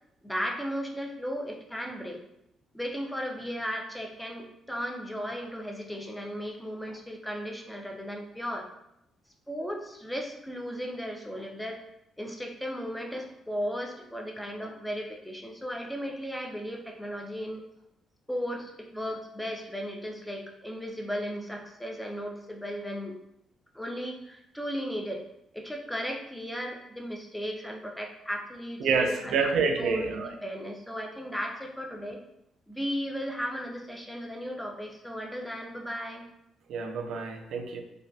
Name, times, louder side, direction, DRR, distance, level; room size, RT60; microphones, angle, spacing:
voice 1, 0.2-2.2 2.7-8.7 9.5-11.8 12.2-17.6 18.3-23.2 23.7-25.2 25.5-29.4 29.8-32.2 32.7-36.3, equal, 5° left, 1 dB, 0.4 m, -35 dB
voice 2, 28.8-30.3 36.7-37.8, right 5 dB, 75° right, 4 dB, 0.3 m, -28 dB
2.5 x 2.3 x 2.2 m, 0.80 s
cardioid pair, 90°, 0 cm